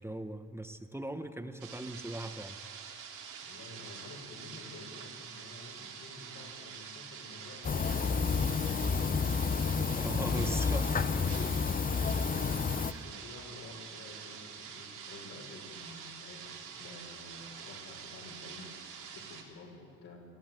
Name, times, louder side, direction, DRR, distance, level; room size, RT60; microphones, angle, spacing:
voice 1, 0.0-2.6 10.0-11.4 12.8-13.0, right 1 dB, 10° right, 8 dB, 1.2 m, -39 dB
sound 1, 1.6-19.4, right 7 dB, 90° right, 3.1 m, -46 dB
voice 2, 3.4-9.9 12.7-18.7 19.1-20.3, left 2 dB, 70° left, -1 dB, 6.2 m, -51 dB
sound 2, 7.6-12.9, left 5 dB, 30° left, 0.8 m, -30 dB
21.5 x 14.5 x 9.3 m, 2.2 s
cardioid pair, 90°, 30 cm